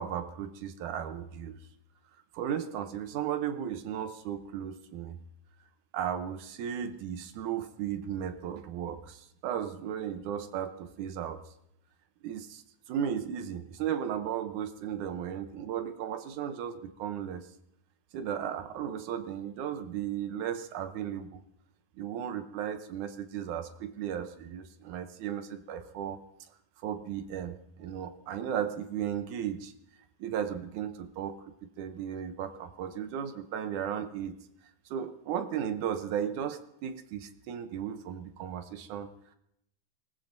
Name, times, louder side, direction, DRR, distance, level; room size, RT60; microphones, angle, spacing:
voice 1, 0.0-1.6 2.3-5.2 5.9-11.4 12.2-17.5 18.1-21.4 22.0-26.2 26.8-29.7 30.2-34.4 34.9-39.4, right 9 dB, 70° right, 8 dB, 2.1 m, -35 dB
25.5 x 19.5 x 2.6 m, 0.79 s
omnidirectional pair, 4.0 m